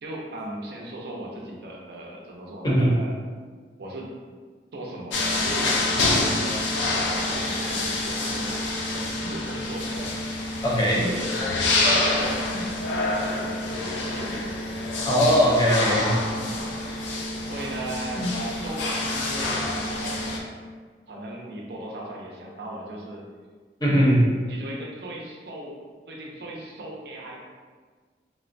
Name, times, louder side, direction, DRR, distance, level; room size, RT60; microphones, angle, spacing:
voice 1, 0.0-3.1 3.8-4.1 4.7-6.7 7.1-10.1 10.9-11.7 12.1-14.6 15.8-16.6 17.5-20.6 21.1-23.2 24.5-25.8 26.1-27.4, right 1 dB, 65° right, -1 dB, 0.5 m, -37 dB
sound 1, 5.1-20.4, left 2 dB, 90° left, 0.5 m, -27 dB
voice 2, 10.6-11.1 15.1-16.1 18.2-18.3 23.8-24.2, equal, 20° left, -5 dB, 0.5 m, -20 dB
3.6 x 2.1 x 2.5 m, 1.5 s
head